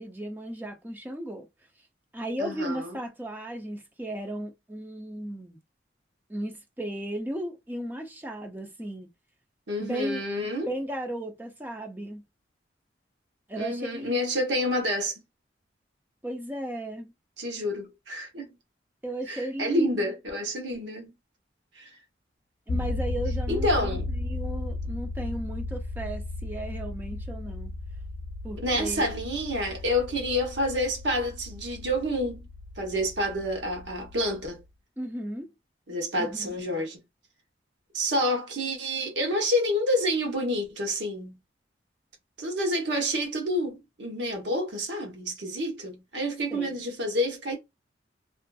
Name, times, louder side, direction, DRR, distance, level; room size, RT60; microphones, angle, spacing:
voice 1, 0.0-1.5 2.1-5.6 6.3-9.1 9.8-10.2 10.7-12.2 13.5-14.2 16.2-17.1 19.0-20.1 22.7-27.7 28.4-29.1 35.0-35.5 36.2-36.5 46.5-46.8, right 1 dB, 10° right, 0.5 m, -35 dB
voice 2, 2.4-3.0 9.7-10.7 13.6-15.2 17.4-18.5 19.3-21.1 21.8-21.9 23.5-24.1 28.6-32.5 32.8-34.6 35.9-37.0 37.9-41.4 42.4-47.6, equal, 75° right, 0.9 m, -28 dB
Low End Hit and Rumble, 22.7-34.6, left 2 dB, 80° left, 0.3 m, -35 dB
2.5 x 2.4 x 2.3 m
head